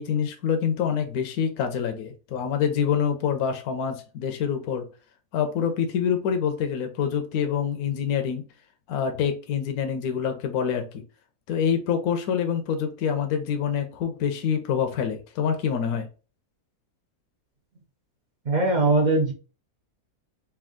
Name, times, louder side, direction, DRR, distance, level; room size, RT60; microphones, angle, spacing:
voice 1, 0.0-4.9 5.3-8.4 8.9-10.9 11.5-16.1, left 7 dB, 75° left, 6 dB, 1.1 m, -26 dB
voice 2, 18.5-19.3, right 3 dB, 45° right, 1 dB, 0.6 m, -20 dB
3.5 x 2.6 x 3.6 m, 0.35 s
omnidirectional pair, 1.6 m